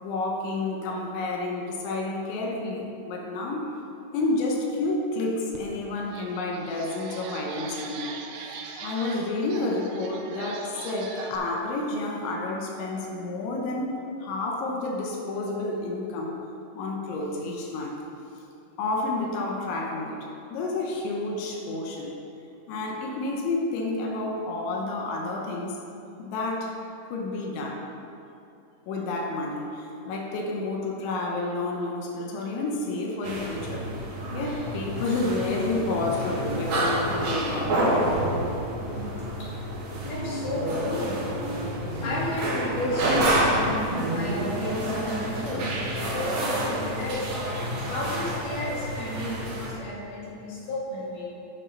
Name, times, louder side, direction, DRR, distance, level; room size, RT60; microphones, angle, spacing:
voice 1, 0.0-3.7 4.1-16.4 16.7-18.0 18.8-20.3 20.5-22.1 22.7-25.8 26.2-26.8 27.1-27.8 28.9-33.9 34.3-37.9, left 2 dB, 75° left, 0 dB, 3.1 m, -30 dB
sound 1, 5.5-5.6 6.0-11.4, right 5 dB, 90° right, 2.4 m, -41 dB
sound 2, 33.2-49.7, right 1 dB, 55° right, 2.1 m, -28 dB
voice 2, 40.1-41.2 42.0-51.3, left 1 dB, 60° left, -7 dB, 3.9 m, -33 dB
10.5 x 5.5 x 5.5 m, 2.8 s
omnidirectional pair, 5.6 m